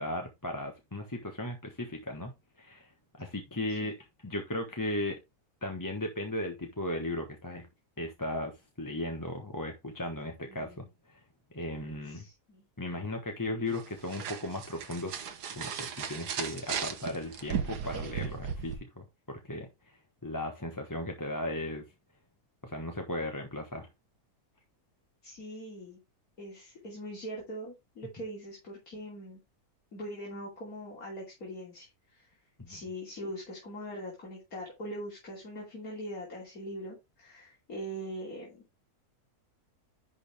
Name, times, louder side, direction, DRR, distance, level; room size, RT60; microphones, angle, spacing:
voice 1, 0.0-4.0 4.2-5.2 5.6-7.7 8.0-11.2 11.5-12.3 12.8-15.3 15.5-21.8 22.6-23.9 32.6-32.8, left 1 dB, 15° left, 1.0 m, -36 dB
voice 2, 10.5-10.8 12.1-12.6 25.2-26.0 26.4-29.4 29.9-32.3 32.7-38.6, equal, 60° left, 3.4 m, -42 dB
sound 1, 13.7-18.8, right 7 dB, 90° right, 1.7 m, -36 dB
11.0 x 4.5 x 3.4 m
omnidirectional pair, 1.7 m